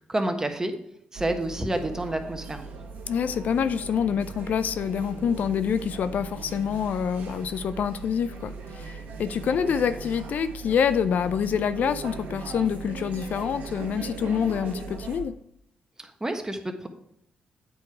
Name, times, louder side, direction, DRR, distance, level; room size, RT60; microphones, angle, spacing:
voice 1, 0.1-0.7 1.1-2.6 16.0-16.9, right 1 dB, 20° right, 6 dB, 1.2 m, -29 dB
Cafe Noise, 1.1-15.2, right 4 dB, 75° right, 1.2 m, -39 dB
voice 2, 3.1-15.3, left 7 dB, 65° left, 13 dB, 0.4 m, -26 dB
8.6 x 4.6 x 4.7 m, 0.72 s
hypercardioid pair, 50°, 3 cm